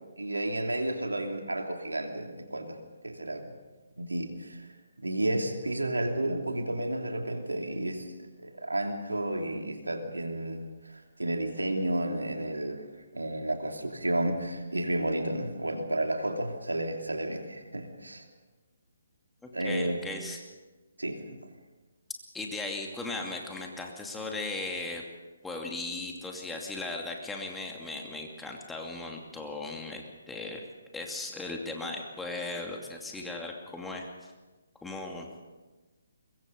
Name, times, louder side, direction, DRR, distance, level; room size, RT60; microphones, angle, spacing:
voice 1, 0.2-2.8 3.0-3.5 4.0-4.6 5.0-10.6 11.2-12.8 13.1-18.2 19.5-20.0 21.0-21.4, right 1 dB, 85° right, 4 dB, 3.0 m, -31 dB
voice 2, 19.4-20.4 22.3-25.0 25.4-30.6 30.9-34.1 34.8-35.3, left 2 dB, 5° left, 1 dB, 2.5 m, -37 dB
23.0 x 22.0 x 5.4 m, 1.2 s
figure-of-eight pair, 140°, 0 cm